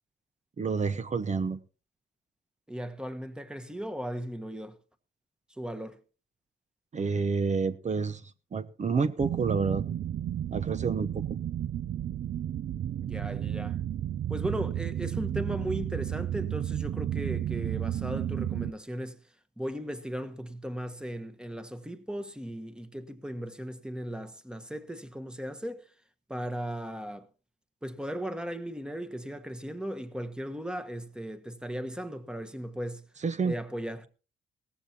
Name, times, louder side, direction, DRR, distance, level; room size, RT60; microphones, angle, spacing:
voice 1, 0.6-1.6 6.9-9.8 10.5-11.3 33.2-33.5, right 5 dB, 35° right, 0.9 m, -29 dB
voice 2, 2.7-4.7 5.6-6.0 13.0-13.8 14.3-19.2 19.6-25.8 26.3-27.3 27.8-33.0 33.4-34.1, equal, 5° right, 1.3 m, -37 dB
sound 1, 9.2-18.7, right 11 dB, 55° right, 0.5 m, -32 dB
17.5 x 14.5 x 2.9 m
cardioid pair, 90°, 20 cm